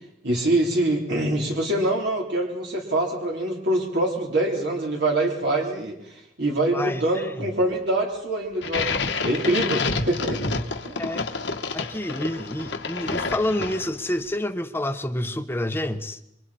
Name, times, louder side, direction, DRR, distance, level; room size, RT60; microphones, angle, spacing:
voice 1, 0.2-8.9 9.2-10.4 10.9-11.0, right 1 dB, 65° right, 3.7 m, -24 dB
voice 2, 6.7-7.5 11.0-11.2 11.7-16.2, left 1 dB, 15° left, 1.0 m, -28 dB
sound 1, 8.6-14.1, left 4 dB, 85° left, 1.7 m, -28 dB
27.5 x 25.0 x 4.3 m
head